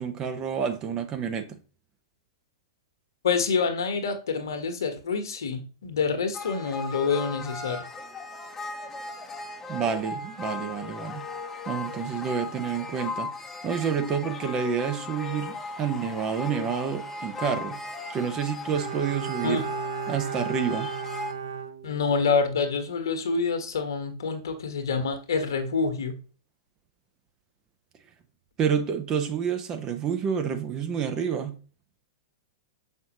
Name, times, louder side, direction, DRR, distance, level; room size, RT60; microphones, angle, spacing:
voice 1, 0.0-1.6 9.7-11.2 11.7-13.3 13.6-17.8 18.1-19.7 20.1-20.9 28.6-31.6, right 7 dB, 30° right, 1.0 m, -29 dB
voice 2, 3.2-7.8 19.4-19.6 21.8-26.1, left 5 dB, 70° left, 1.4 m, -27 dB
sound 1, 6.3-21.3, left 3 dB, 15° left, 1.0 m, -37 dB
Bowed string instrument, 18.7-22.5 22.8-22.9, right 6 dB, 75° right, 0.7 m, -35 dB
6.4 x 5.5 x 3.0 m
figure-of-eight pair, 105°, 2 cm